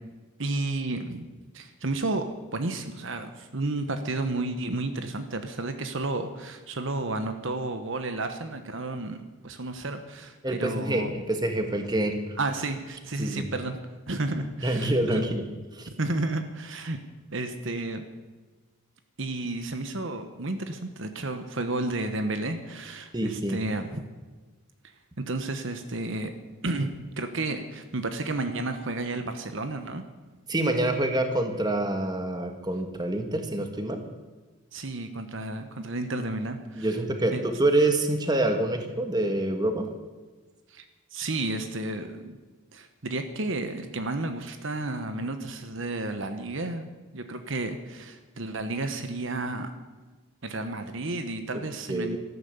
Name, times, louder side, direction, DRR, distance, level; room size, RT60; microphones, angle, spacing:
voice 1, 0.4-1.2 1.5-2.2 2.5-11.1 12.4-13.8 14.1-15.3 16.0-17.0 17.3-18.0 19.2-24.0 24.8-26.3 26.6-30.0 34.7-36.9 37.3-37.4 40.7-40.8 41.1-42.4 42.7-49.7 50.4-52.2, right 2 dB, 60° right, 8 dB, 1.2 m, -32 dB
voice 2, 10.4-12.1 13.2-13.4 14.6-15.4 15.7-15.9 23.1-23.6 30.5-34.0 36.8-39.9 51.9-52.2, right 1 dB, 20° right, 5 dB, 1.6 m, -26 dB
13.5 x 12.5 x 8.0 m, 1.3 s
head